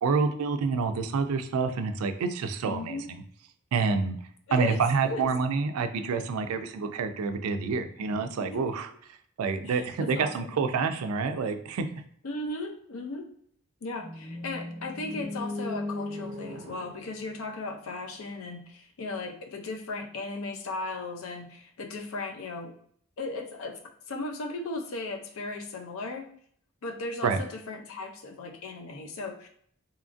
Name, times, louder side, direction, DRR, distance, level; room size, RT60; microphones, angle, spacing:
voice 1, 0.0-3.2 3.7-4.2 4.5-11.8 27.2-27.4, right 5 dB, 80° right, 8 dB, 0.3 m, -28 dB
voice 2, 2.6-3.0 4.5-5.2 8.4-8.6 9.7-10.5 12.2-13.3 13.8-22.8 23.2-23.8 24.1-26.3 26.8-29.5, left 2 dB, 70° left, 4 dB, 0.5 m, -36 dB
sound 1, 14.0-18.1, left 2 dB, 35° right, 0.6 m, -38 dB
2.7 x 2.5 x 2.4 m, 0.62 s
head